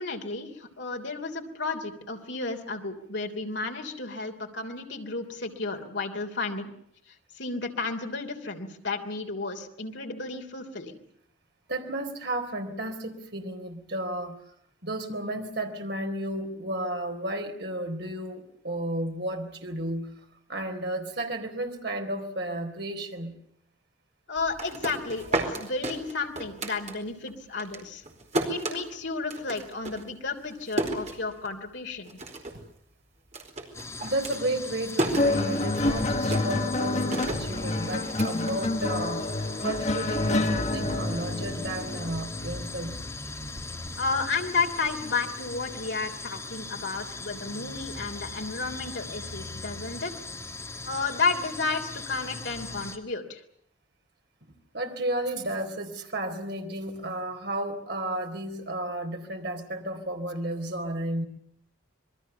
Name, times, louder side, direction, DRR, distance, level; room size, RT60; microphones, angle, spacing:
voice 1, 0.0-6.7 7.1-11.0 24.3-28.0 28.5-32.2 44.0-50.1 50.9-53.4, left 4 dB, 60° left, 3 dB, 3.3 m, -32 dB
voice 2, 11.7-14.4 14.8-20.2 20.5-23.3 34.0-39.3 39.6-43.0 54.7-61.3, right 1 dB, 55° right, 4 dB, 3.9 m, -33 dB
sound 1, 24.4-27.3 27.6-31.7 32.0-32.7 32.9-39.2, right 2 dB, 35° right, 4.5 m, -33 dB
sound 2, 33.7-53.0, left 2 dB, 15° left, 2.3 m, -39 dB
sound 3, 35.2-43.9 44.9-45.1, left 2 dB, 35° left, 1.5 m, -28 dB
27.5 x 22.0 x 6.9 m, 0.70 s
head